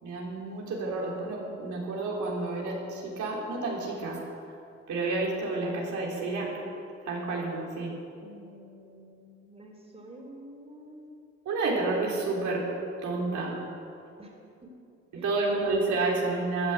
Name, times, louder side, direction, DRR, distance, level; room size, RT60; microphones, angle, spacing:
voice 1, 0.0-4.2 4.9-6.5 7.0-7.9 11.5-12.6 13.0-13.6 15.1-16.7, right 3 dB, 75° right, -3 dB, 3.6 m, -30 dB
voice 2, 8.1-11.2 14.2-14.7 15.1-15.3, equal, 20° right, 0 dB, 3.8 m, -49 dB
15.0 x 10.5 x 8.0 m, 2.6 s
cardioid pair, 90°, 30 cm